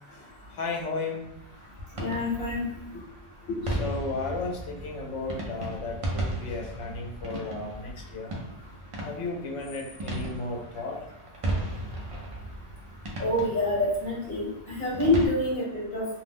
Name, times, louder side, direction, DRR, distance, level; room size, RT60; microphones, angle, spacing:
voice 1, 0.6-1.3 2.9-3.0 3.5-8.3 9.0-11.0, left 3 dB, 80° left, 0 dB, 0.9 m, -34 dB
sound 1, 1.2-15.3, right 1 dB, 45° right, 0.4 m, -36 dB
voice 2, 1.9-2.6 13.2-16.0, left 1 dB, 45° left, -6 dB, 1.3 m, -26 dB
2.5 x 2.0 x 3.4 m, 0.79 s
omnidirectional pair, 1.2 m